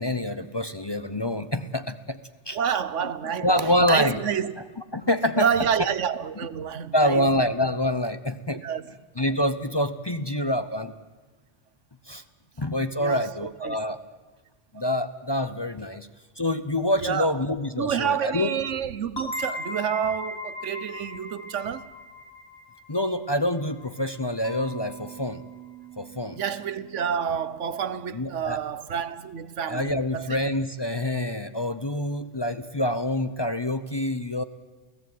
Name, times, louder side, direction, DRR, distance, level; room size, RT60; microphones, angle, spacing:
voice 1, 0.0-2.2 2.5-2.8 3.4-4.2 4.9-5.5 6.9-8.6 9.2-10.9 12.1-12.2 12.6-14.0 14.7-16.1 16.4-18.5 22.9-25.4 26.0-26.4 28.1-28.6 29.7-34.4, left 1 dB, 25° left, 0.7 m, -26 dB
voice 2, 2.5-4.5 5.4-7.3 8.6-8.9 13.0-13.3 13.6-13.8 14.7-14.8 17.0-17.3 17.8-21.9 26.4-30.4, right 8 dB, 80° right, 1.3 m, -28 dB
sound 1, 19.2-24.6, left 1 dB, 60° left, 2.9 m, -38 dB
Mallet percussion, 24.4-28.4, right 7 dB, 15° right, 1.1 m, -46 dB
28.5 x 16.5 x 9.3 m
omnidirectional pair, 1.2 m